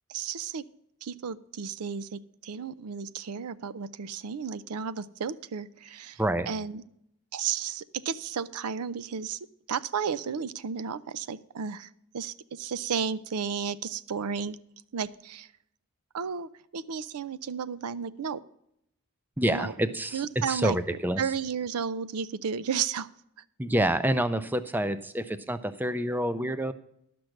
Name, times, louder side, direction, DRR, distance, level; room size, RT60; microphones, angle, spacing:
voice 1, 0.1-0.6 1.0-6.2 6.5-6.8 7.3-9.4 9.7-14.6 14.9-15.5 16.1-18.4 19.5-19.7 20.1-20.8 21.2-23.1, right 6 dB, 90° right, 17 dB, 0.5 m, -33 dB
voice 2, 19.4-21.3 23.6-26.7, right 1 dB, 10° right, 13 dB, 0.4 m, -27 dB
11.5 x 6.0 x 6.4 m, 0.75 s
head